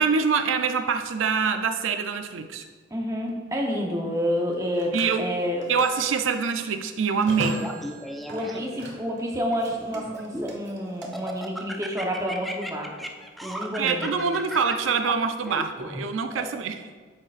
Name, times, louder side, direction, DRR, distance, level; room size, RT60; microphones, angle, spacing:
voice 1, 0.0-2.6 4.9-5.3 5.7-7.7 13.8-16.9, right 5 dB, 85° right, 7 dB, 0.4 m, -25 dB
Telephone, 2.2-2.4 4.4-9.2 9.5-11.1, right 1 dB, 65° right, 1.2 m, -39 dB
voice 2, 2.9-5.7 8.3-12.9 13.4-14.1 16.3-16.5, equal, 15° right, 0 dB, 0.9 m, -29 dB
Laughter, 7.6-8.9 9.5-10.6 11.0-16.0, equal, ahead, 0.3 m, -36 dB
8.5 x 6.5 x 2.5 m, 1.4 s
head